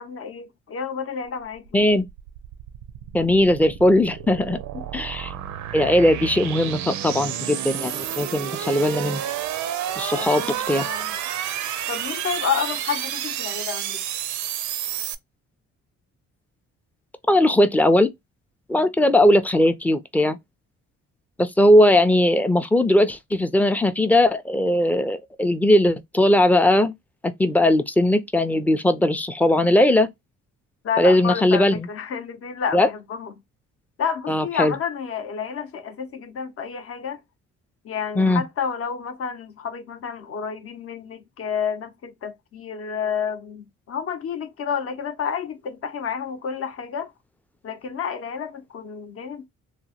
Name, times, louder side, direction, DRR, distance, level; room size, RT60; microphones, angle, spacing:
voice 1, 0.0-1.8 4.7-4.8 10.2-11.2 11.9-14.0 30.8-33.3 34.0-37.2 37.8-47.1 47.6-49.5, left 7 dB, 50° left, 0.7 m, -30 dB
sound 1, 1.4-15.2, right 11 dB, 70° right, 0.5 m, -30 dB
voice 2, 1.7-2.1 3.1-4.6 4.9-5.3 5.7-9.2 10.0-10.9 17.3-18.1 18.7-20.4 21.4-26.9 27.2-30.1 31.0-31.9 32.7-32.9 34.3-34.7 38.2-38.4, left 1 dB, 5° left, 0.4 m, -19 dB
2.9 x 2.1 x 2.8 m
cardioid pair, 90°, 30 cm